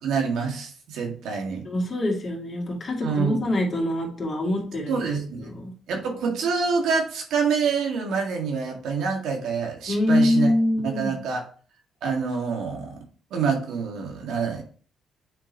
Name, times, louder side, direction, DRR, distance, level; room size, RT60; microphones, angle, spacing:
voice 1, 0.0-1.6 3.0-3.4 4.9-5.5 5.9-10.5 10.8-11.4 12.0-13.0 13.3-14.6, right 5 dB, 80° right, 1 dB, 1.9 m, -26 dB
voice 2, 1.6-5.0 5.4-5.7 9.9-11.1, left 1 dB, 40° left, -1 dB, 2.5 m, -24 dB
8.8 x 3.9 x 3.0 m, 0.41 s
cardioid pair, 90°, 0 cm